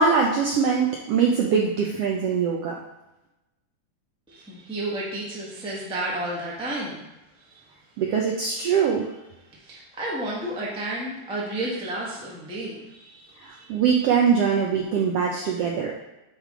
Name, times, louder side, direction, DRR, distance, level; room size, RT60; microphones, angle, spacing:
voice 1, 0.0-2.8 8.0-9.1 13.4-15.9, right 6 dB, 80° right, -2 dB, 1.4 m, -22 dB
voice 2, 4.3-7.0 7.4-7.6 9.5-13.7, right 1 dB, 5° right, -6 dB, 0.5 m, -32 dB
9.8 x 3.3 x 3.8 m, 0.97 s
omnidirectional pair, 3.5 m